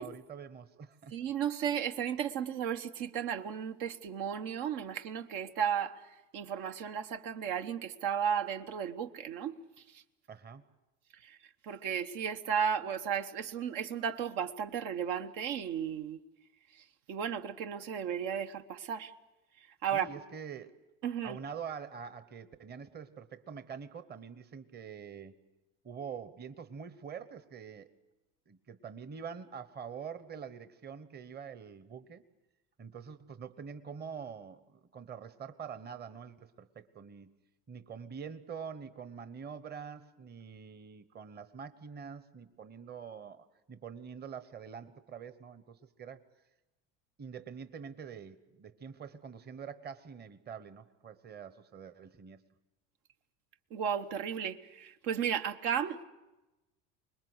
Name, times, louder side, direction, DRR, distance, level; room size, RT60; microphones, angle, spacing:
voice 1, 0.0-1.2 10.3-10.6 19.9-20.8 21.2-25.4 25.8-27.9 28.5-32.2 32.8-37.3 37.7-46.2 47.2-52.4, right 7 dB, 30° right, 12 dB, 1.1 m, -45 dB
voice 2, 1.1-6.0 6.3-9.6 9.9-10.0 11.2-11.4 11.6-16.2 17.1-19.1 19.8-20.1 21.0-21.4 53.7-56.0, right 8 dB, 70° right, 7 dB, 1.2 m, -34 dB
24.5 x 21.0 x 8.0 m, 1.0 s
supercardioid pair, 105°, 35 cm